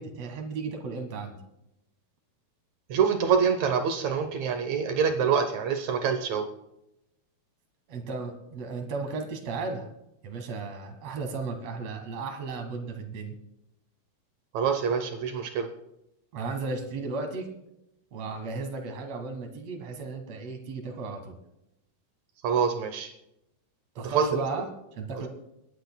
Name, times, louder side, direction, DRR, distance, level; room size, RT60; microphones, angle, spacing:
voice 1, 0.0-1.4 7.9-9.9 10.2-13.4 16.3-17.5 18.1-21.4 24.0-24.7 25.0-25.3, right 4 dB, 55° right, 4 dB, 2.4 m, -35 dB
voice 2, 2.9-6.5 14.5-15.7 22.4-23.1 24.0-24.4, right 6 dB, 75° right, 6 dB, 1.7 m, -25 dB
30.0 x 10.5 x 2.3 m, 0.86 s
omnidirectional pair, 4.3 m